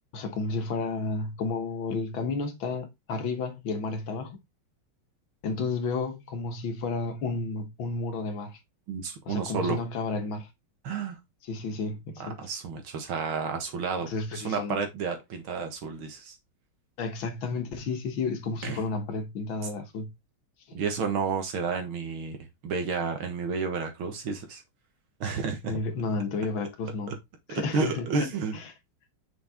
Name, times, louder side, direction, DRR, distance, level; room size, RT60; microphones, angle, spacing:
voice 1, 0.1-4.4 5.4-8.6 9.3-10.5 11.5-12.4 14.1-14.8 17.0-20.1 20.7-20.8 25.6-27.2 27.5-28.7, left 3 dB, 70° left, 1.9 m, -32 dB
voice 2, 8.9-9.8 10.8-11.2 12.2-16.4 18.6-18.8 20.7-24.6 25.2-25.8 27.1-27.2 27.5-28.6, right 5 dB, 70° right, 2.2 m, -31 dB
6.0 x 4.6 x 3.6 m
omnidirectional pair, 2.3 m